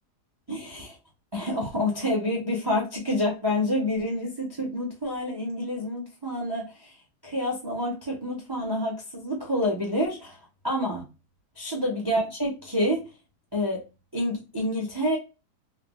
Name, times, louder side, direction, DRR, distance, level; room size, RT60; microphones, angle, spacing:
voice 1, 0.5-1.0 1.3-6.9 7.2-10.4 10.6-11.0 11.6-13.1 13.5-13.8 14.1-15.2, left 1 dB, 40° right, 0.3 m, -28 dB
3.4 x 2.0 x 2.3 m
omnidirectional pair, 1.7 m